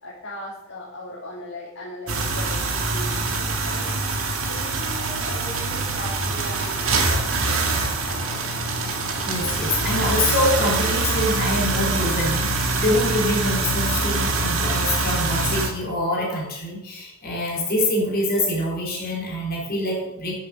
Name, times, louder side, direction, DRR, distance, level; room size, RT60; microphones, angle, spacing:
voice 1, 0.0-3.9 4.4-8.4, left 1 dB, 65° left, -6 dB, 3.2 m, -38 dB
sound 1, 2.1-15.7, right 3 dB, 85° right, 2.0 m, -24 dB
voice 2, 9.2-20.3, left 1 dB, 50° left, -3 dB, 4.1 m, -25 dB
9.8 x 7.6 x 6.6 m, 0.96 s
head